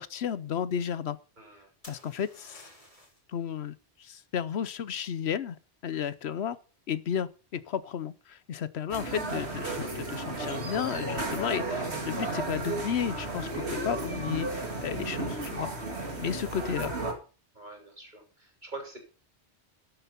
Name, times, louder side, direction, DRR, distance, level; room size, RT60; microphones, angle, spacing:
voice 1, 0.0-1.2 1.9-2.7 3.3-5.6 5.8-6.6 6.9-15.7 16.2-17.1, left 8 dB, 75° left, 1.0 m, -33 dB
voice 2, 1.4-1.7 14.7-14.9 15.9-16.1 17.5-19.0, right 3 dB, 45° right, 3.5 m, -45 dB
sound 1, 1.8-3.3 7.0-7.4, left 1 dB, 30° left, 3.9 m, -53 dB
sound 2, 8.9-17.1, right 2 dB, 75° right, 2.7 m, -34 dB
12.5 x 7.3 x 5.7 m
omnidirectional pair, 1.1 m